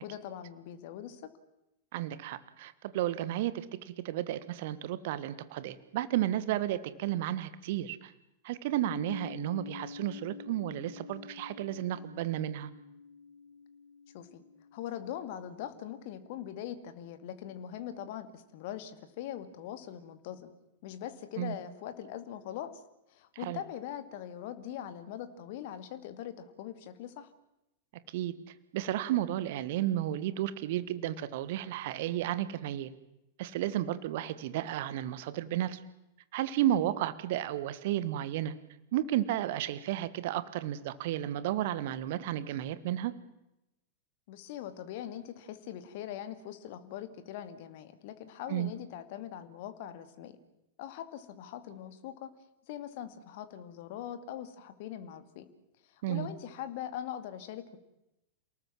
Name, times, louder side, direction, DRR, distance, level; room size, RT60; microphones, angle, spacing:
voice 1, 0.0-1.2 14.1-14.4 14.7-20.5 20.8-22.7 23.1-27.3 44.3-50.4 50.8-52.3 52.7-55.5 55.9-57.8, left 10 dB, 50° left, 10 dB, 2.3 m, -42 dB
voice 2, 1.9-8.1 8.4-12.7 21.4-21.5 23.4-23.6 28.1-28.3 28.7-32.9 33.4-35.8 36.3-38.5 38.9-43.1 48.5-48.7 56.0-56.3, right 13 dB, 50° right, 15 dB, 1.5 m, -32 dB
sound 1, 8.8-16.6, left 5 dB, 70° left, 1.3 m, -48 dB
29.0 x 19.0 x 7.5 m, 0.90 s
figure-of-eight pair, 90°, 0 cm